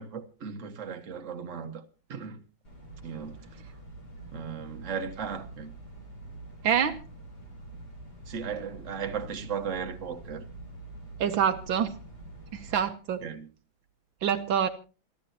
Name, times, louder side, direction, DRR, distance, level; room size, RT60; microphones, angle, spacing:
voice 1, 0.0-1.8 2.1-2.4 3.0-3.4 4.3-5.7 8.3-10.4 13.2-13.5, right 6 dB, 40° right, 1.6 m, -36 dB
sound 1, 2.6-12.8, right 2 dB, 50° left, 6.0 m, -46 dB
voice 2, 6.6-7.0 11.2-11.9 12.5-13.2 14.2-14.7, right 8 dB, 75° right, 1.6 m, -26 dB
28.0 x 11.5 x 2.8 m
omnidirectional pair, 2.2 m